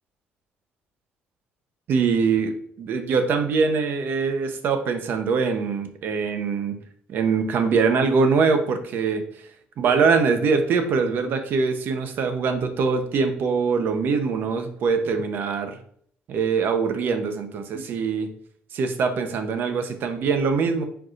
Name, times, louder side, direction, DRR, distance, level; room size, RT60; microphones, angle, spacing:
voice 1, 1.9-6.8 7.1-9.2 9.8-15.7 16.3-18.3 18.7-20.8, right 5 dB, 60° right, 7 dB, 0.7 m, -23 dB
4.6 x 3.9 x 2.5 m, 0.62 s
cardioid pair, 100°, 4 cm